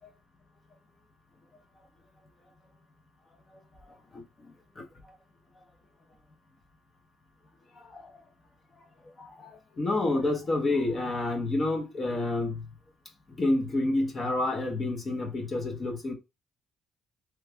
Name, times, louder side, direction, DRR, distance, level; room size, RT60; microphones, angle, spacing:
voice 1, 9.2-12.6 13.3-16.1, left 2 dB, 30° left, 0.8 m, -29 dB
3.2 x 2.3 x 3.4 m
cardioid pair, 130°, 0 cm